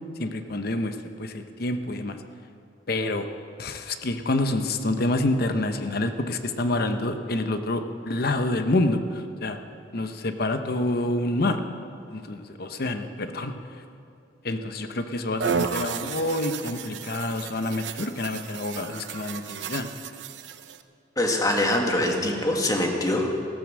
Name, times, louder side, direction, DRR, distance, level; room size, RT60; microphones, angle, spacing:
voice 1, 0.2-2.2 2.9-3.3 3.6-9.6 9.9-11.6 12.1-13.5 14.4-19.9, left 2 dB, 60° left, 8 dB, 0.9 m, -27 dB
sound 1, 15.4-20.8, right 6 dB, 85° right, 0.7 m, -33 dB
voice 2, 21.2-23.3, left 1 dB, 20° left, 1 dB, 1.9 m, -23 dB
15.5 x 14.0 x 6.2 m, 2.6 s
head